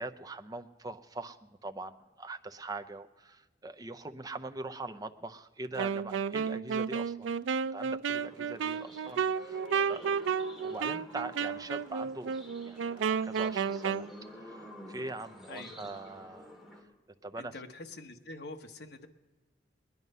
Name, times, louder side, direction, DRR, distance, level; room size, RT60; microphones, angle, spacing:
voice 1, 0.0-7.3 7.7-12.3 12.7-14.1 14.4-16.6 17.2-17.5, right 2 dB, 20° right, 8 dB, 0.6 m, -42 dB
Wind instrument woodwind instrument, 5.8-14.1, right 6 dB, 85° right, 0.3 m, -32 dB
sound 1, 8.2-16.8, equal, ahead, 2.1 m, -50 dB
voice 2, 15.5-16.1 17.4-19.1, left 2 dB, 60° left, 5 dB, 1.1 m, -46 dB
20.0 x 11.0 x 5.4 m, 1.3 s
head